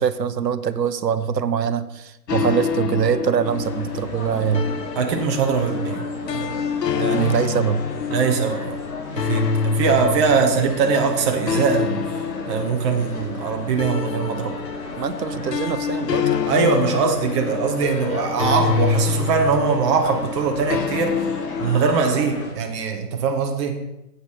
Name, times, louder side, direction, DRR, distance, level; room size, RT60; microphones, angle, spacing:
voice 1, 0.0-4.7 7.1-7.8 15.0-16.3, right 7 dB, 75° right, 13 dB, 0.8 m, -23 dB
sound 1, 2.3-21.8, left 6 dB, 75° left, 0.8 m, -27 dB
sound 2, 3.4-22.5, left 2 dB, 60° left, 4.1 m, -36 dB
voice 2, 5.0-6.5 6.9-7.4 8.1-8.7 9.1-12.0 12.5-14.5 16.5-21.3 21.6-23.7, right 5 dB, 20° right, 3 dB, 0.8 m, -22 dB
9.3 x 8.2 x 4.4 m, 0.91 s
figure-of-eight pair, 135°, 49 cm